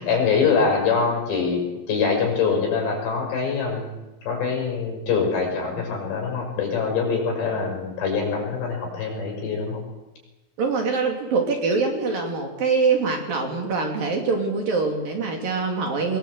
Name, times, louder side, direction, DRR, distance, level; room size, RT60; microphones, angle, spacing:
voice 1, 0.0-3.9 4.3-9.8, left 5 dB, 55° left, 0 dB, 7.9 m, -24 dB
voice 2, 10.6-16.2, right 4 dB, 50° right, 2 dB, 3.9 m, -24 dB
23.0 x 21.5 x 8.0 m, 1.1 s
omnidirectional pair, 6.0 m